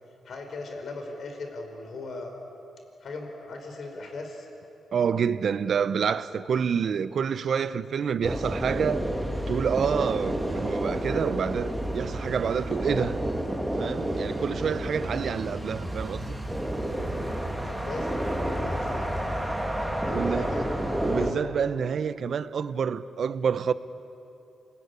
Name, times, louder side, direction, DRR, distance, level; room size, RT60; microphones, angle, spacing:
voice 1, 0.2-2.3 3.0-4.5 17.6-19.5 20.0-20.7, left 3 dB, 65° left, 5.4 m, -39 dB
voice 2, 4.9-9.0 9.5-13.2 13.8-16.4 20.1-20.5 21.0-23.7, right 7 dB, 65° right, 0.9 m, -28 dB
sound 1, 8.2-21.3, right 1 dB, 5° right, 3.2 m, -30 dB
28.0 x 20.0 x 9.9 m
cardioid pair, 80°, 0 cm